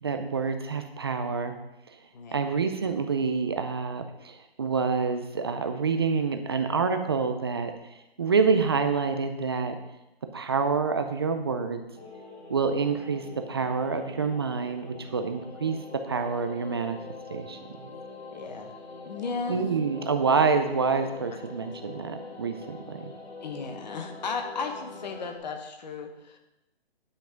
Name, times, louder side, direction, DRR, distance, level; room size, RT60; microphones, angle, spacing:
voice 1, 0.0-1.5 2.3-7.7 8.2-9.8 10.3-11.8 12.5-17.0 17.3-17.9 19.5-23.0, right 5 dB, 25° right, 7 dB, 0.5 m, -27 dB
sound 1, 12.0-25.4, left 3 dB, 85° left, 2.1 m, -44 dB
voice 2, 18.3-18.7 19.0-19.6 21.3-21.4 23.4-26.4, left 4 dB, 45° left, 4 dB, 1.5 m, -35 dB
10.5 x 5.9 x 5.1 m, 0.93 s
hypercardioid pair, 150°, 31 cm